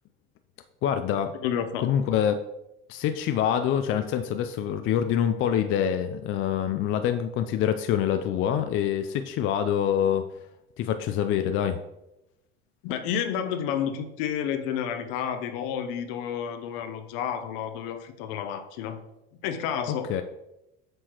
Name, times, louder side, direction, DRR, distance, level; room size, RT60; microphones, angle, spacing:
voice 1, 0.8-1.3 1.8-2.4 2.9-10.2 10.8-11.8 20.1-20.2, left 9 dB, 45° left, 8 dB, 0.4 m, -25 dB
voice 2, 1.4-1.9 12.8-19.0 19.4-20.2, left 8 dB, 70° left, 8 dB, 0.8 m, -30 dB
7.7 x 4.5 x 3.0 m, 0.90 s
hypercardioid pair, 85°, 29 cm